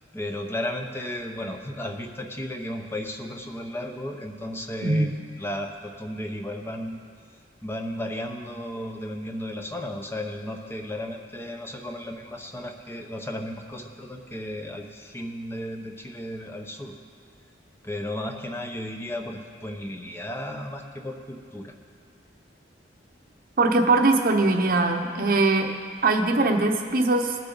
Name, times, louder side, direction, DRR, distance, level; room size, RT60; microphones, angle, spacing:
voice 1, 0.1-5.1 5.4-7.0 7.6-16.9 17.8-21.7, left 1 dB, 15° left, 3 dB, 0.8 m, -34 dB
voice 2, 4.8-5.1 23.6-25.7 26.0-27.3, right 2 dB, 55° right, 4 dB, 0.9 m, -21 dB
19.5 x 6.9 x 3.9 m, 2.1 s
head